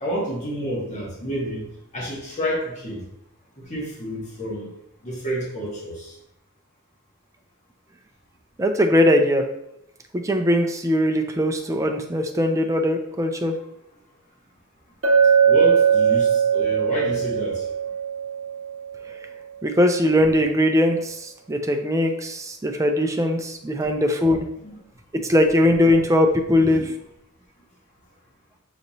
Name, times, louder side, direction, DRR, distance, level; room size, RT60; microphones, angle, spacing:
voice 1, 0.0-1.7 1.9-3.0 3.6-4.7 5.0-6.1 15.5-17.6 24.6-24.8 26.6-26.9, equal, 35° left, -4 dB, 1.2 m, -29 dB
voice 2, 8.6-9.4 10.2-13.5 19.6-24.5 25.2-26.9, left 1 dB, 15° right, 4 dB, 0.4 m, -20 dB
Chink clink, 15.0-19.0, right 7 dB, 70° right, 0.9 m, -20 dB
6.3 x 3.0 x 2.7 m, 0.80 s
head